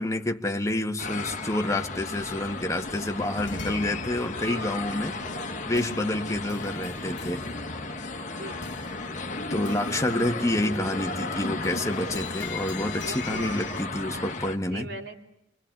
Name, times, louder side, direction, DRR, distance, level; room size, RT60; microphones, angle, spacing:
voice 1, 0.0-5.2 5.7-7.4 9.5-14.9, left 1 dB, 15° left, 4 dB, 1.4 m, -28 dB
sound 1, 1.0-14.6, left 3 dB, 40° left, 1.5 m, -34 dB
sound 2, 2.2-11.2 11.5-13.8, left 4 dB, 70° left, 1.5 m, -43 dB
voice 2, 8.3-8.7 13.0-13.6 14.7-15.2, right 1 dB, 70° right, 1 dB, 3.4 m, -39 dB
26.5 x 25.0 x 9.0 m, 0.80 s
head